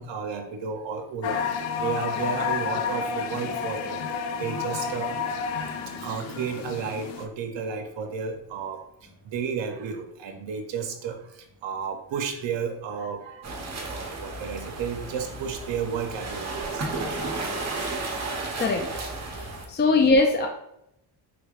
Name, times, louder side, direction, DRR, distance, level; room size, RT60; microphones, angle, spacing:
voice 1, 0.0-1.4 1.8-5.1 6.0-8.8 9.3-13.4 13.8-16.8 19.3-19.5 20.0-20.1, right 6 dB, 75° right, 5 dB, 0.6 m, -32 dB
sound 1, 1.2-7.3, left 6 dB, 85° left, 0.6 m, -30 dB
sound 2, 13.4-19.7, right 3 dB, 35° right, 0.8 m, -33 dB
voice 2, 19.3-20.5, left 3 dB, 25° left, 2 dB, 0.3 m, -21 dB
3.5 x 3.3 x 2.3 m, 0.80 s
cardioid pair, 95°, 45 cm